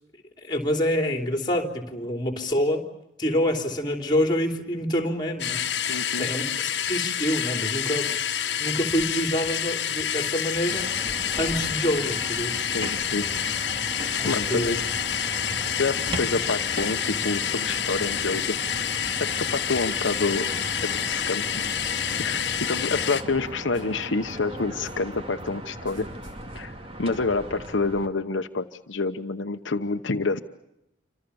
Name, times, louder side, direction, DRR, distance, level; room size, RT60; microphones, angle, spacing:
voice 1, 0.4-2.8 3.2-5.6 6.2-8.1 8.6-10.9 11.4-12.7 14.2-14.8 15.5-15.6, equal, 25° left, 4 dB, 3.4 m, -26 dB
sound 1, 5.4-23.2, left 9 dB, 60° left, 1.5 m, -28 dB
voice 2, 5.9-6.3 12.7-13.2 14.2-14.8 15.8-18.9 19.2-20.5 20.8-21.4 22.2-26.1 26.5-26.7 27.0-30.4, left 3 dB, 75° left, 7 dB, 1.0 m, -28 dB
sound 2, 8.9-9.0 9.4-9.6 10.0-10.7 11.1-11.2 11.6-11.8 12.2-18.5 18.8-19.6 19.9-20.2 20.4-20.7 21.0-21.8 22.1-22.9 23.2-26.4, right 2 dB, 75° right, 6.4 m, -52 dB
sound 3, 10.7-28.1, right 1 dB, 30° right, 2.4 m, -37 dB
28.5 x 26.0 x 7.0 m, 0.83 s
head